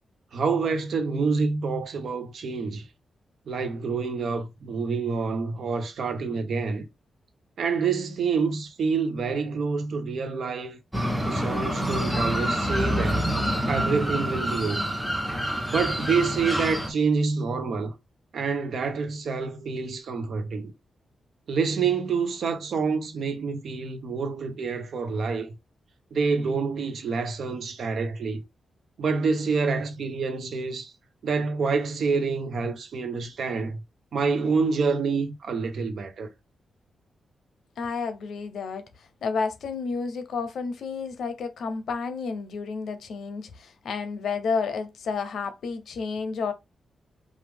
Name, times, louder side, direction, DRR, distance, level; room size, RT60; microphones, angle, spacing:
voice 1, 0.3-2.9 3.5-6.9 7.6-10.8 11.2-13.3 13.7-14.8 15.7-17.9 18.3-20.7 21.5-25.5 26.1-28.4 29.0-30.9 31.2-33.8 34.1-36.3, right 5 dB, 65° right, 0.8 m, -27 dB
sound 1, 10.9-16.9, equal, 5° right, 1.0 m, -27 dB
voice 2, 37.8-46.5, left 5 dB, 75° left, 0.7 m, -31 dB
4.8 x 2.4 x 3.5 m
wide cardioid pair, 115°, 0 cm